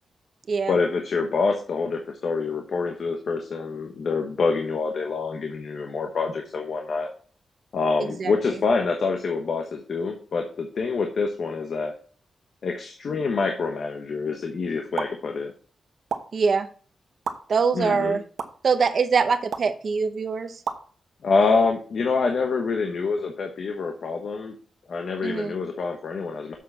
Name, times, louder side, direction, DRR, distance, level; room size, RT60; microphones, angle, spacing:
voice 1, 0.7-7.1 7.7-11.9 12.6-15.5 17.7-18.2 21.2-24.5 24.9-26.6, left 4 dB, 55° left, 3 dB, 1.2 m, -26 dB
sound 1, 15.0-15.1 16.1-16.2 17.2-17.3 18.4-18.5 19.5-19.7 20.7-20.8, right 6 dB, 65° right, 1.1 m, -29 dB
voice 2, 16.3-16.7 17.5-18.2 18.6-20.6 25.2-25.5, right 5 dB, 45° right, 9 dB, 0.8 m, -23 dB
7.5 x 6.5 x 4.0 m, 0.42 s
wide cardioid pair, 170°, 0 cm